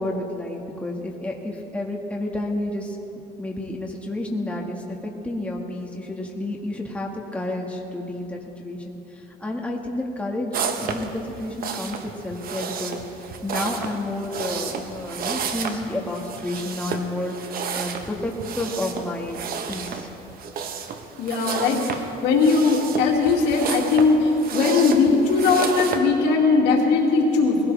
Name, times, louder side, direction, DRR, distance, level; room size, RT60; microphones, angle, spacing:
voice 1, 0.0-3.0 3.4-13.0 13.4-19.4 19.7-20.1, left 1 dB, 5° left, -1 dB, 1.8 m, -30 dB
sound 1, 10.5-26.0, right 6 dB, 60° right, 1.2 m, -32 dB
voice 2, 21.2-27.7, left 4 dB, 90° left, -1 dB, 2.4 m, -19 dB
21.0 x 16.5 x 3.4 m, 2.9 s
cardioid pair, 110°, 17 cm